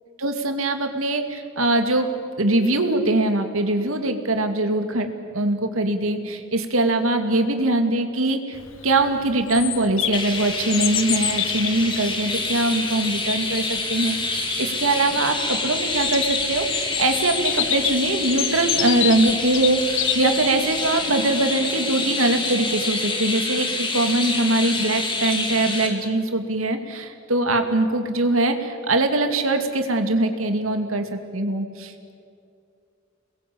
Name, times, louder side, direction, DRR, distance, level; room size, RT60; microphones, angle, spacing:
voice 1, 0.2-2.1 2.4-5.1 5.3-8.6 8.8-32.1, right 2 dB, 90° right, 6 dB, 2.6 m, -22 dB
Bird vocalization bird call bird song, 8.5-21.3, left 11 dB, 70° left, 1.4 m, -30 dB
Chirp tweet, 10.1-25.9, left 3 dB, 25° left, 3.7 m, -27 dB
29.0 x 21.5 x 8.7 m, 2.4 s
head